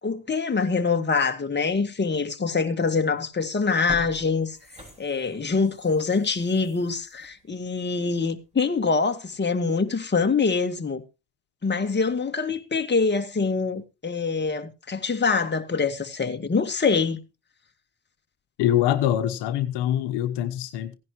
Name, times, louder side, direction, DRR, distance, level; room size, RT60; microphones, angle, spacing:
voice 1, 0.0-4.6 5.0-11.0 11.6-17.2, left 4 dB, 25° left, 2.0 m, -24 dB
sound 1, 3.1-3.2 3.7-8.4 8.8-8.9, equal, 15° right, 6.3 m, -45 dB
voice 2, 18.6-20.9, left 11 dB, 80° left, 1.2 m, -24 dB
17.0 x 10.5 x 3.1 m
supercardioid pair, 65°, 41 cm